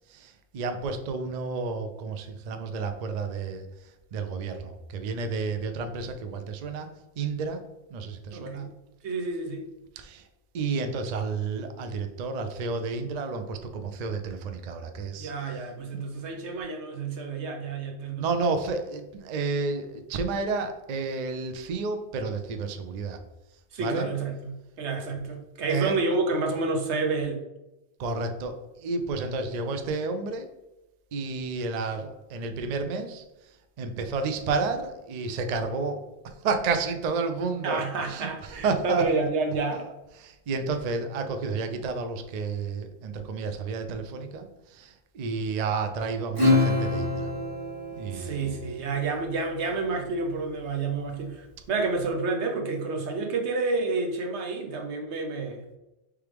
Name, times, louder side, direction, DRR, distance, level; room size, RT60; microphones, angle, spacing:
voice 1, 0.1-3.6 4.1-6.9 7.2-7.6 7.9-8.7 10.0-10.2 10.5-15.5 15.9-16.0 18.2-23.2 23.8-24.1 25.7-26.0 28.0-30.5 31.1-33.2 33.8-39.0 39.7-39.9 40.2-47.3 47.9-48.5, right 4 dB, 55° right, 7 dB, 0.5 m, -31 dB
voice 2, 8.3-8.7 9.0-9.6 15.2-18.3 23.7-27.4 37.6-39.8 48.1-55.6, right 3 dB, 85° right, 2 dB, 1.1 m, -29 dB
Acoustic guitar / Strum, 46.3-49.3, left 2 dB, 20° right, 1.2 m, -26 dB
4.6 x 3.4 x 3.4 m, 0.97 s
omnidirectional pair, 1.1 m